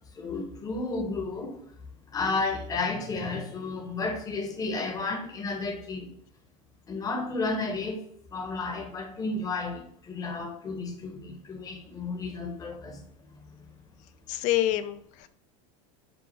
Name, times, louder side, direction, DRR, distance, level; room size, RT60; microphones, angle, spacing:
voice 1, 0.2-1.6 2.1-6.1 6.9-8.0 8.3-13.0 13.4-13.7, left 3 dB, 20° left, 3 dB, 0.8 m, -32 dB
voice 2, 14.3-15.3, left 13 dB, 45° left, 13 dB, 0.4 m, -27 dB
5.2 x 2.3 x 4.3 m, 0.65 s
supercardioid pair, 130°, 18 cm